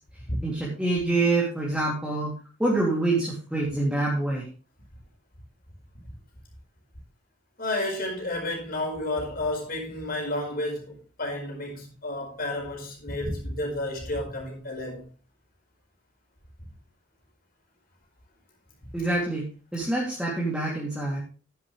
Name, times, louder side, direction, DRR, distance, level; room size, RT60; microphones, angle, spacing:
voice 1, 0.4-2.3 2.6-4.5 18.9-19.4 19.7-21.2, right 2 dB, 5° right, 2.8 m, -26 dB
voice 2, 7.6-15.1, left 1 dB, 50° left, 4.9 m, -31 dB
11.0 x 10.5 x 3.3 m
head